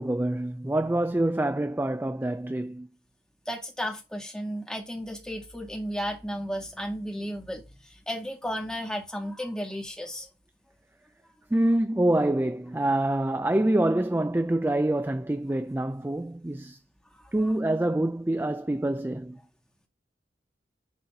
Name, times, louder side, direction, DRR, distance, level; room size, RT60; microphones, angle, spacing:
voice 1, 0.0-2.9 11.5-16.8 17.3-19.4, right 1 dB, 10° right, 0.4 m, -26 dB
voice 2, 3.5-10.3 17.1-17.5, equal, 5° left, 2.0 m, -34 dB
10.5 x 4.3 x 5.0 m
head